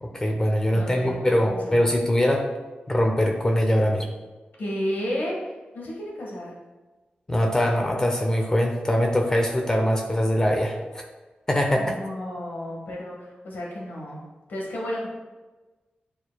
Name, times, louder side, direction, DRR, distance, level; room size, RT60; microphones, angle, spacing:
voice 1, 0.0-2.5 2.9-4.1 7.3-11.0 11.5-12.0, equal, 20° left, 2 dB, 0.6 m, -22 dB
voice 2, 0.7-1.2 1.5-1.8 4.6-6.6 11.7-14.2 14.5-15.1, equal, 85° left, -3 dB, 1.5 m, -32 dB
9.2 x 4.6 x 2.2 m, 1.2 s
wide cardioid pair, 130°, 3 cm